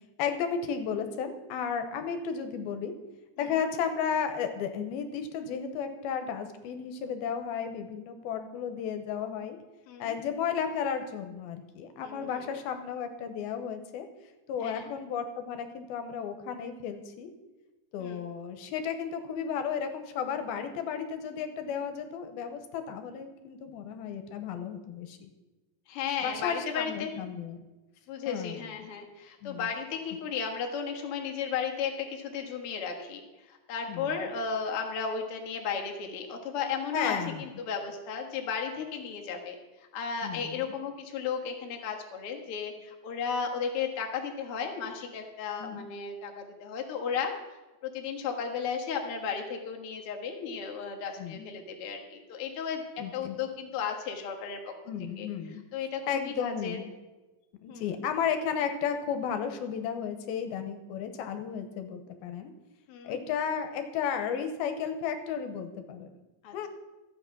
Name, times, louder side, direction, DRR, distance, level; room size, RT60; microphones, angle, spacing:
voice 1, 0.2-2.9 3.4-9.6 10.0-14.1 14.5-17.3 17.9-25.3 26.2-27.6 28.3-28.6 29.4-29.7 33.9-34.1 36.9-37.4 40.2-40.6 45.6-45.9 51.2-51.5 53.0-53.4 54.9-55.6 56.1-56.9 57.6-62.5 63.0-66.1 66.5-66.7, left 7 dB, 85° left, 7 dB, 2.7 m, -33 dB
voice 2, 12.0-12.5 14.6-14.9 18.0-18.2 25.9-27.1 28.1-47.4 47.8-54.7 55.2-55.3 55.7-56.8 57.7-57.9 62.9-63.2 66.4-66.7, left 6 dB, 50° left, 2 dB, 1.8 m, -34 dB
13.5 x 8.7 x 6.0 m, 1.1 s
omnidirectional pair, 4.4 m